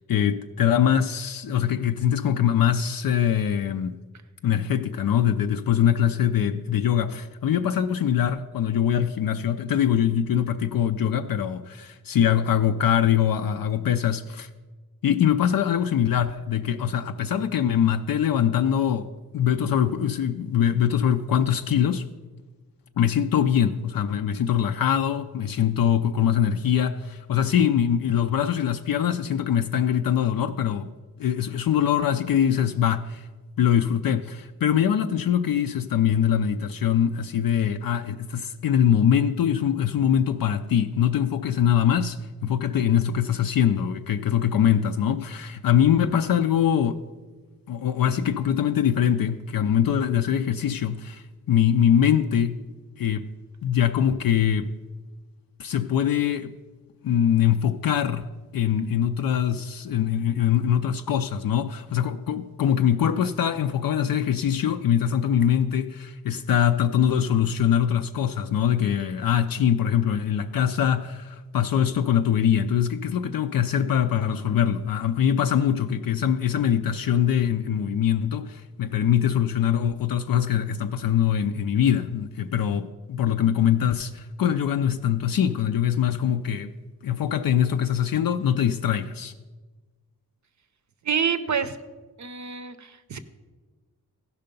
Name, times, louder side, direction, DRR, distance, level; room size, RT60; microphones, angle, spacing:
voice 1, 0.0-4.0 4.4-14.5 15.0-22.0 23.0-30.9 31.2-33.3 33.6-47.0 47.7-52.6 53.0-53.3 53.6-54.7 55.6-56.5 57.0-86.7 87.0-89.3, left 9 dB, 65° left, 0.5 m, -23 dB
voice 2, 91.0-91.8 92.2-93.2, right 7 dB, 50° right, 0.6 m, -27 dB
15.0 x 5.7 x 5.2 m
wide cardioid pair, 135°, 37 cm